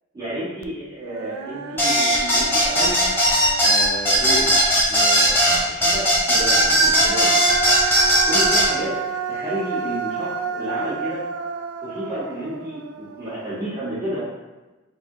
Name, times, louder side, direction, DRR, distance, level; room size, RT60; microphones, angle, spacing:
voice 1, 0.1-3.1 3.6-4.5 4.9-7.3 8.2-8.9 9.3-11.2 11.8-14.2, right 1 dB, 15° right, -12 dB, 1.3 m, -31 dB
Human voice, 0.6-0.7 1.1-4.7 6.4-13.7, right 5 dB, 90° right, 0.3 m, -31 dB
sound 1, 1.8-8.7, equal, 10° left, 0.6 m, -17 dB
4.0 x 2.8 x 2.7 m, 1.2 s
head